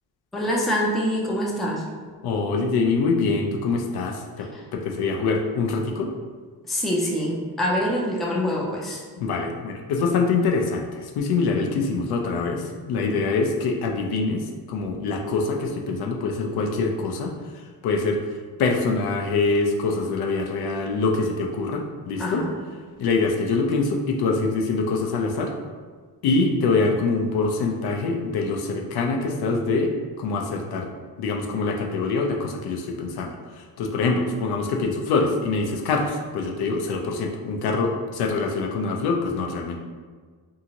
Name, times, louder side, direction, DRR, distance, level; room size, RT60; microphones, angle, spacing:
voice 1, 0.3-1.8 4.4-4.6 6.7-9.0 22.2-22.6, equal, ahead, -3 dB, 0.3 m, -25 dB
voice 2, 2.2-6.1 9.2-10.9 11.2-17.3 17.8-18.2 18.6-22.4 23.0-25.5 26.2-30.9 31.2-33.3 33.8-39.8, left 3 dB, 75° left, 2 dB, 0.5 m, -24 dB
2.7 x 2.5 x 2.8 m, 1.5 s
cardioid pair, 105°, 39 cm